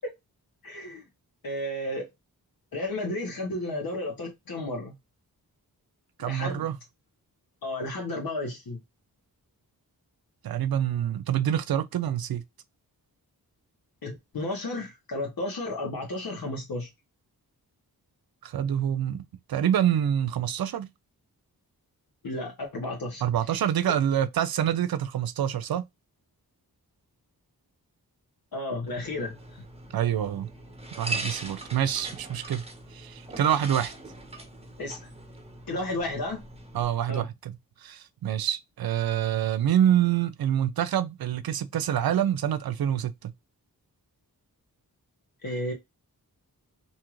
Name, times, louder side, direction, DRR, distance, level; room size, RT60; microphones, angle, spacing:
voice 1, 0.6-1.1 1.4-2.1 2.7-5.0 6.2-6.6 7.6-8.8 14.0-16.9 22.2-23.2 23.5-23.6 28.5-29.3 34.8-35.0 35.7-36.4 37.1-37.2 45.4-45.7, left 1 dB, 65° left, 1.0 m, -32 dB
voice 2, 6.2-6.8 10.4-12.4 18.4-19.2 19.5-20.9 23.2-25.8 29.9-30.5 31.0-32.6 32.9-33.9 36.7-37.5 37.8-43.3, right 10 dB, 70° right, 0.5 m, -26 dB
sound 1, 28.9-36.8, right 2 dB, 15° right, 1.1 m, -40 dB
2.7 x 2.4 x 3.0 m
cardioid pair, 70°, 38 cm